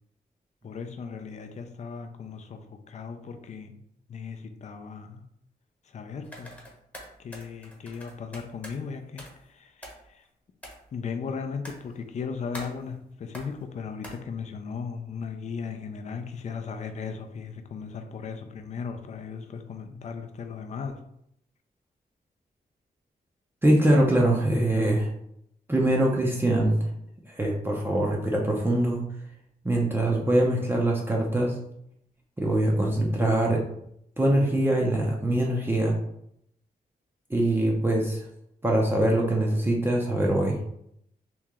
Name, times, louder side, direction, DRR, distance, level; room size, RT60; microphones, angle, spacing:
voice 1, 0.6-3.8 4.1-5.2 5.8-6.5 7.2-10.3 10.9-21.0, left 5 dB, 45° left, 6 dB, 0.4 m, -37 dB
sound 1, 6.2-8.8 9.2-9.5 9.8-10.2 10.6-10.8 11.6-12.1 12.5-12.9 13.3-13.6 14.0-14.2, equal, 10° left, 0.9 m, -44 dB
voice 2, 23.6-25.1 25.7-26.8 27.3-29.0 29.6-31.5 32.4-33.6 34.2-36.0 37.3-38.2 38.6-40.6, right 1 dB, 15° right, -2 dB, 0.6 m, -23 dB
3.0 x 2.8 x 3.6 m, 0.74 s
wide cardioid pair, 135°, 16 cm